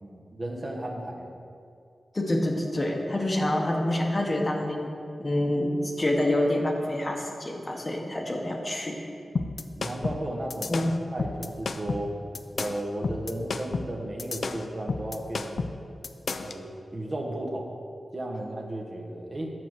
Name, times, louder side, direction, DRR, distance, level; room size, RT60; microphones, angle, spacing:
voice 1, 0.0-1.3 9.8-10.7 11.1-12.1 12.6-15.7 16.4-17.7 18.1-19.5, right 1 dB, 35° right, 0 dB, 0.9 m, -34 dB
voice 2, 2.1-4.9 5.2-9.0 10.7-10.8, left 1 dB, 30° left, 1 dB, 0.9 m, -27 dB
sound 1, 9.4-16.6, left 4 dB, 60° left, 0.3 m, -32 dB
7.7 x 4.5 x 6.3 m, 2.4 s
wide cardioid pair, 105°, 0 cm